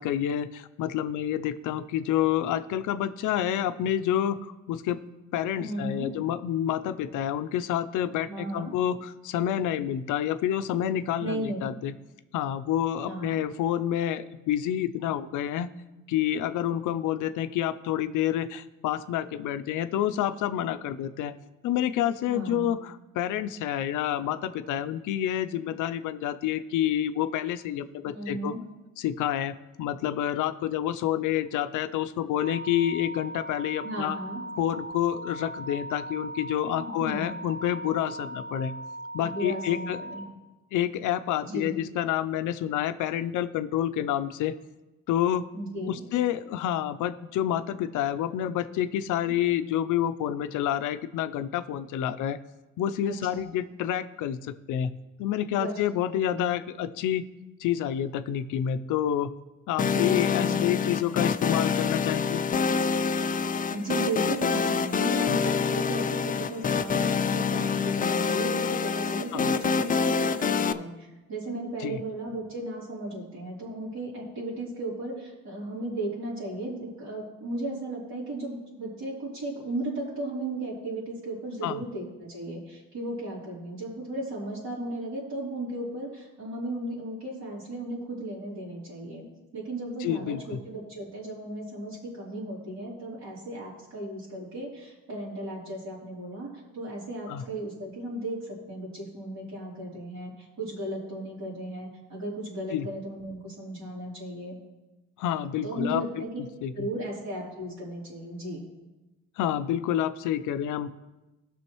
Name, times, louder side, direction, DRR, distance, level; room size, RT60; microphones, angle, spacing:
voice 1, 0.0-5.0 5.3-11.9 12.3-15.7 16.1-21.3 21.6-28.5 29.0-34.2 34.6-38.7 39.1-40.0 40.7-44.5 45.1-45.5 45.9-52.4 52.8-54.9 55.2-57.3 57.6-59.3 59.7-62.4 69.3-69.5 71.8-72.0 81.6-81.8 90.0-90.6 97.3-97.4 102.7-102.9 105.2-106.0 106.4-106.9 109.4-110.9, left 11 dB, 80° left, 12 dB, 0.5 m, -28 dB
voice 2, 5.6-6.1 8.3-8.7 11.2-11.6 13.0-13.4 22.3-22.7 28.0-28.6 33.8-34.4 36.7-37.3 39.2-40.3 41.4-41.8 45.5-45.9 49.3-49.4 53.0-53.4 55.6-55.8 56.2-56.5 59.8-60.0 60.4-60.6 63.7-89.3 89.5-104.6 105.6-106.3 106.7-108.6, right 1 dB, 65° right, -6 dB, 3.7 m, -35 dB
sound 1, 32.3-40.3, right 1 dB, 40° right, 0.8 m, -39 dB
sound 2, 59.8-70.7, left 5 dB, 30° left, 0.4 m, -26 dB
15.5 x 6.2 x 3.1 m, 1.1 s
cardioid pair, 90°, 30 cm